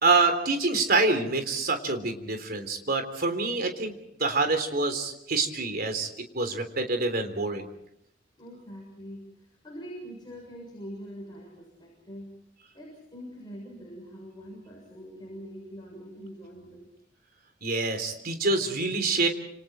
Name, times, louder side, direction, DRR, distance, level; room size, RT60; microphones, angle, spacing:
voice 1, 0.0-3.9 4.2-6.1 6.3-7.7 17.6-19.3, right 3 dB, 55° right, 7 dB, 3.5 m, -26 dB
voice 2, 8.4-12.4 12.7-16.9, equal, 25° left, -3 dB, 6.8 m, -43 dB
30.0 x 27.5 x 4.5 m, 0.76 s
head